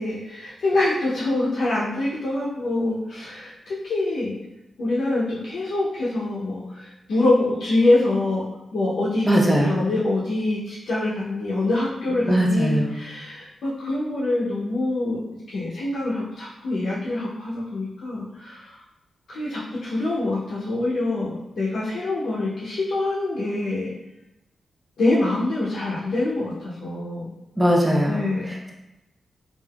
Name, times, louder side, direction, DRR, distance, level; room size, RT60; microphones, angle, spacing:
voice 1, 0.0-4.4 4.8-8.5 8.7-15.2 15.5-18.8 19.3-23.9 25.0-27.3 28.1-28.5, left 2 dB, 80° left, -7 dB, 0.6 m, -25 dB
voice 2, 9.2-9.8 12.3-12.9 27.6-28.2, equal, 10° right, -2 dB, 0.7 m, -19 dB
3.4 x 2.4 x 2.3 m, 0.95 s
cardioid pair, 85°, 0 cm